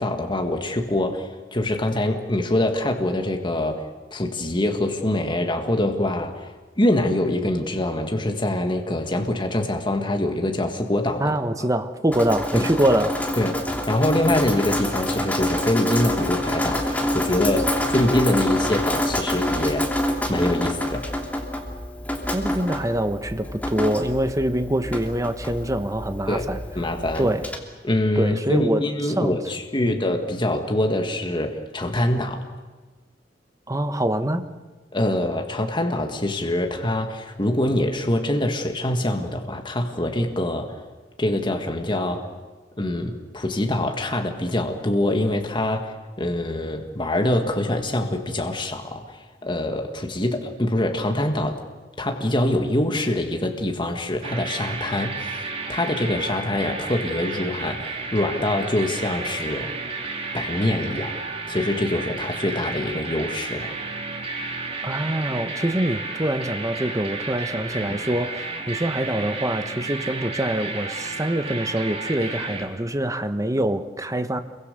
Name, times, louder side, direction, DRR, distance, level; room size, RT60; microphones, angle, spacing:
voice 1, 0.0-11.7 12.5-12.7 13.4-19.9 20.3-21.1 26.3-26.5 26.8-27.3 27.8-32.4 34.9-40.8 41.2-42.3 42.8-51.6 52.0-55.4 55.7-59.7 60.3-61.2 61.5-63.8 67.8-68.0, left 1 dB, 25° left, 3 dB, 1.8 m, -24 dB
voice 2, 11.2-13.2 22.3-26.6 27.2-27.5 28.2-28.9 29.2-29.4 29.8-29.9 33.7-34.5 64.8-74.4, right 1 dB, 20° right, 8 dB, 1.2 m, -24 dB
Drip, 12.1-27.6, left 1 dB, 10° left, 2.9 m, -27 dB
sound 1, 54.2-72.7, right 3 dB, 35° right, 3.3 m, -32 dB
28.0 x 23.0 x 6.7 m, 1.3 s
head